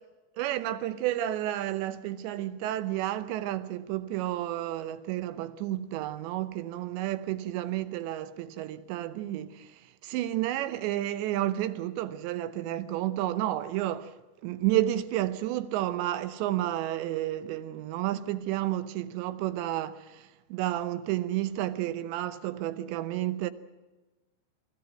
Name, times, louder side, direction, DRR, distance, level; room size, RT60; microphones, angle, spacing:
voice 1, 0.4-14.2 14.4-23.5, right 13 dB, 80° right, 3.1 m, -31 dB
22.5 x 16.0 x 9.2 m
omnidirectional pair, 5.1 m